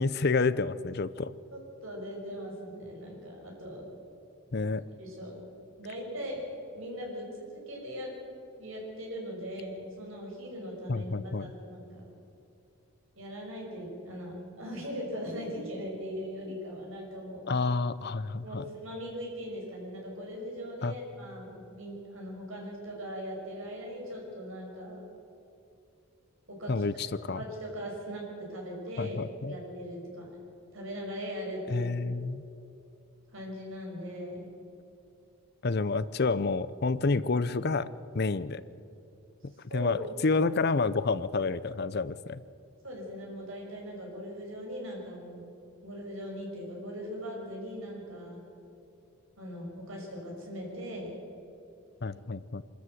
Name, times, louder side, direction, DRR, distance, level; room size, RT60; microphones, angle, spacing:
voice 1, 0.0-1.3 4.5-4.8 10.9-11.5 17.5-18.7 20.8-20.9 26.7-27.4 29.0-29.6 31.7-32.4 35.6-37.9 38.1-38.6 39.4-42.4 52.0-52.6, left 3 dB, 45° left, 16 dB, 0.6 m, -29 dB
voice 2, 1.5-3.9 5.0-5.4 5.8-6.4 6.7-8.1 8.6-11.1 11.4-12.0 13.2-17.4 18.4-25.0 26.5-26.8 27.3-28.2 28.5-29.2 29.5-30.3 30.7-31.9 33.3-34.5 39.7-39.9 42.8-45.4 45.8-48.4 49.4-51.2 52.1-52.2, equal, 65° right, -1 dB, 5.9 m, -40 dB
24.5 x 13.5 x 7.9 m, 2.7 s
head